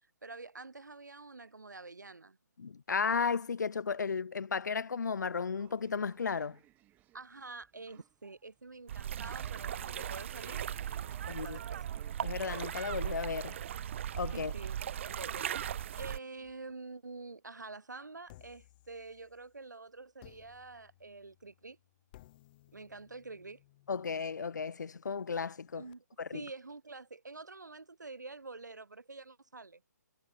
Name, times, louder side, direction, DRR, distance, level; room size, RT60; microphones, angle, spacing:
voice 1, 0.2-2.4 7.1-11.8 14.3-14.8 15.0-21.8 22.7-23.6 25.7-26.0 26.3-29.8, right 3 dB, 90° right, 1.2 m, -47 dB
voice 2, 2.6-6.6 11.3-11.6 12.2-13.6 14.1-14.5 23.9-25.8 26.2-26.4, left 5 dB, 85° left, 0.3 m, -34 dB
sound 1, 5.4-16.7, right 15 dB, 15° right, 6.0 m, -65 dB
sound 2, 8.9-16.2, right 10 dB, 45° right, 1.4 m, -38 dB
sound 3, 18.3-19.6 20.2-25.9, left 17 dB, 30° left, 2.0 m, -61 dB
figure-of-eight pair, 145°, 9 cm